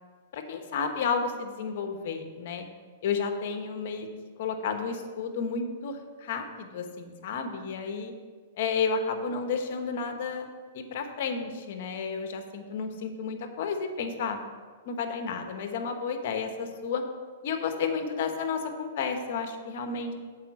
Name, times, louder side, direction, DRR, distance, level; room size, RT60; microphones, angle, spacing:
voice 1, 0.3-2.6 3.0-4.1 4.4-8.1 8.6-10.4 10.7-14.4 14.9-17.0 17.4-20.1, left 5 dB, 60° left, 6 dB, 1.1 m, -32 dB
7.5 x 5.0 x 7.3 m, 1.6 s
hypercardioid pair, 125°, 0 cm